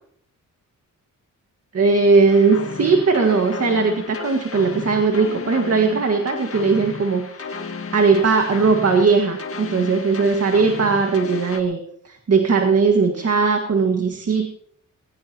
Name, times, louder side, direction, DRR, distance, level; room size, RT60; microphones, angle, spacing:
voice 1, 1.7-7.3 7.9-11.8 12.0-14.5, right 4 dB, 50° right, 3 dB, 1.9 m, -18 dB
sound 1, 2.3-11.6, left 4 dB, 45° left, 1.8 m, -33 dB
20.5 x 19.0 x 3.0 m, 0.65 s
wide cardioid pair, 120°, 33 cm